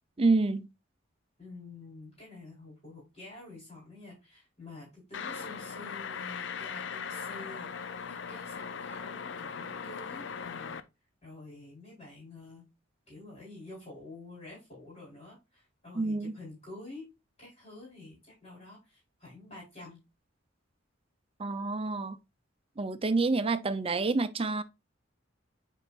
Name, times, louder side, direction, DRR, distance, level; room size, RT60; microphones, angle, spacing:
voice 1, 0.2-0.7 16.0-16.3 21.4-22.2 22.8-24.6, right 3 dB, 30° right, 0.5 m, -28 dB
voice 2, 1.4-10.8 11.2-12.7 13.1-17.0 17.4-20.0, left 2 dB, 35° left, 4.2 m, -48 dB
sound 1, 5.1-10.8, left 6 dB, 65° left, 0.5 m, -39 dB
8.3 x 4.6 x 2.5 m
head